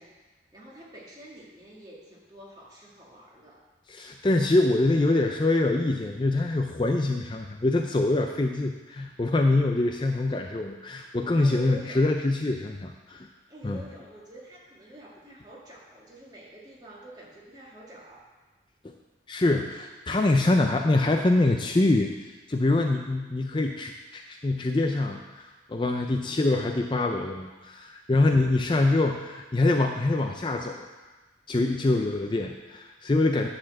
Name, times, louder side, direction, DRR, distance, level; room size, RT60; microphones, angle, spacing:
voice 1, 0.0-3.6 9.8-9.9 11.4-12.1 13.5-18.2, right 1 dB, 20° right, -4 dB, 1.8 m, -47 dB
voice 2, 3.9-13.3 13.6-13.8 18.8-18.9 19.3-30.9 31.5-33.5, left 2 dB, 25° left, 3 dB, 0.4 m, -25 dB
10.5 x 4.3 x 7.3 m, 1.2 s
head